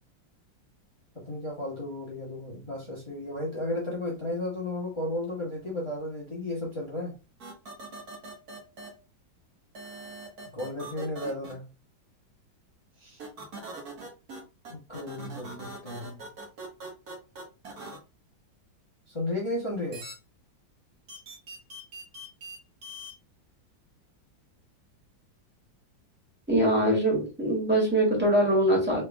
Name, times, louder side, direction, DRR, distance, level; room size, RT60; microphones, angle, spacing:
voice 1, 1.1-7.2 10.5-11.7 13.0-13.2 14.7-16.2 19.1-20.0, left 1 dB, 20° left, 1.0 m, -34 dB
sound 1, 7.4-8.9 9.7-11.5 13.2-14.4 14.6-18.0 19.9-20.1 21.1-22.6 22.8-23.1, right 2 dB, 55° right, 1.8 m, -41 dB
voice 2, 26.5-29.0, right 1 dB, 5° right, 1.7 m, -23 dB
4.4 x 3.5 x 2.3 m
omnidirectional pair, 2.1 m